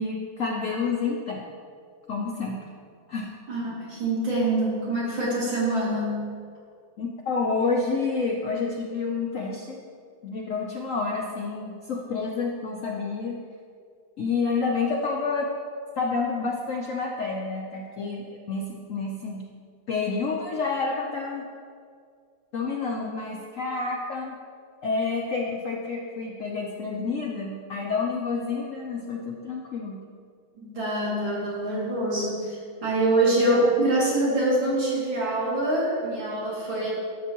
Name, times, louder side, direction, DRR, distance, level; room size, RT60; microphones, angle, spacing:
voice 1, 0.0-1.4 2.1-2.6 3.1-3.3 7.0-9.8 10.2-13.3 14.2-15.5 16.0-19.4 19.9-21.4 22.5-24.3 24.8-30.0, left 4 dB, 70° left, -1 dB, 0.7 m, -29 dB
voice 2, 3.5-6.3 30.6-36.9, right 1 dB, 85° right, -7 dB, 3.2 m, -25 dB
11.5 x 6.8 x 3.0 m, 2.2 s
omnidirectional pair, 2.1 m